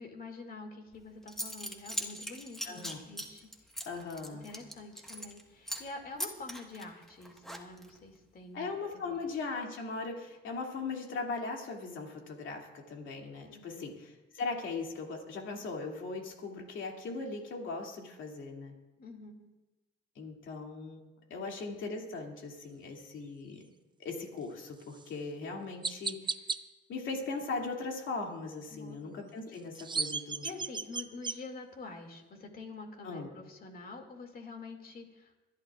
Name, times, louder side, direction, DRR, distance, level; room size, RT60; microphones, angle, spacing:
voice 1, 0.0-3.5 4.3-8.7 8.9-9.3 13.5-13.9 19.0-19.5 21.3-21.6 28.7-29.0 29.5-29.6 30.4-35.4, left 3 dB, 50° left, 3 dB, 2.4 m, -47 dB
Zipper (clothing) / Coin (dropping), 0.9-1.0 1.3-5.4 5.7-5.9 6.2-8.0, equal, ahead, 1.5 m, -40 dB
voice 2, 2.6-3.0 3.8-4.4 8.5-18.7 20.2-21.0 21.3-23.6 24.0-26.4 26.9-30.5 33.0-33.3, left 3 dB, 75° left, 1 dB, 2.6 m, -39 dB
Chirp tweet, 24.9-25.1 25.8-26.6 29.5-31.4, right 4 dB, 25° right, 0.5 m, -34 dB
25.5 x 11.0 x 2.5 m, 1.1 s
cardioid pair, 90°, 20 cm